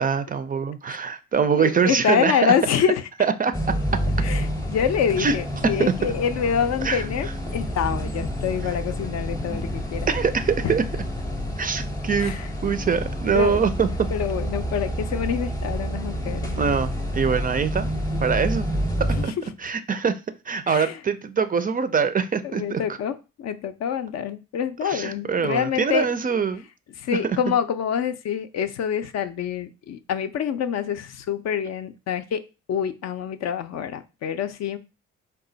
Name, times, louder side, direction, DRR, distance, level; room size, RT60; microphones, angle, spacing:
voice 1, 0.0-2.5 3.4-3.5 5.2-5.3 5.8-5.9 6.8-7.0 10.1-10.8 11.6-13.9 16.6-17.9 18.2-18.7 19.2-19.3 19.6-20.2 20.5-22.8 24.8-26.6 27.2-27.4, right 6 dB, 30° right, 0.3 m, -23 dB
voice 2, 1.6-3.1 4.2-10.1 10.6-10.7 12.2-12.5 13.3-13.6 14.1-16.8 19.1-19.4 20.7-21.0 22.4-26.1 27.0-32.4 32.7-34.8, left 8 dB, 60° left, 0.5 m, -26 dB
sound 1, 3.5-19.2, equal, 10° left, 0.7 m, -28 dB
4.0 x 2.2 x 3.8 m
cardioid pair, 90°, 30 cm